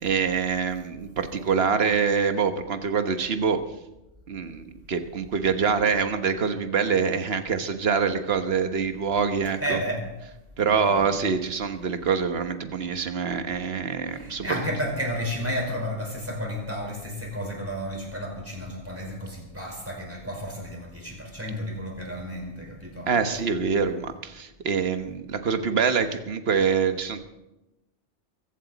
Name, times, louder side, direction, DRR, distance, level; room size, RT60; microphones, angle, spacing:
voice 1, 0.0-3.6 4.3-9.8 10.6-14.6 23.1-27.2, right 6 dB, 60° right, 8 dB, 1.4 m, -25 dB
voice 2, 9.6-10.0 10.6-11.2 14.1-23.1, equal, 10° right, 0 dB, 5.1 m, -32 dB
23.0 x 15.5 x 4.1 m, 0.97 s
omnidirectional pair, 1.2 m